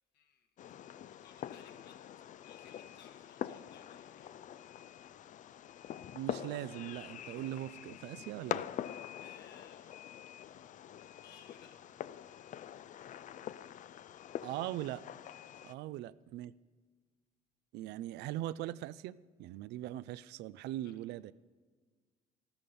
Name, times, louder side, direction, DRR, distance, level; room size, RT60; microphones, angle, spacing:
voice 1, 0.1-2.0 2.4-4.3 9.2-10.0 11.2-12.1 15.5-15.8 20.8-21.0, left 7 dB, 70° left, 3 dB, 2.0 m, -62 dB
Fireworks, 0.6-15.7, left 10 dB, 50° left, 0.4 m, -45 dB
voice 2, 6.1-8.7 14.4-15.0 15.6-16.5 17.7-21.3, right 14 dB, 85° right, 18 dB, 0.5 m, -40 dB
13.0 x 13.0 x 5.4 m, 1.4 s
cardioid pair, 110°, 17 cm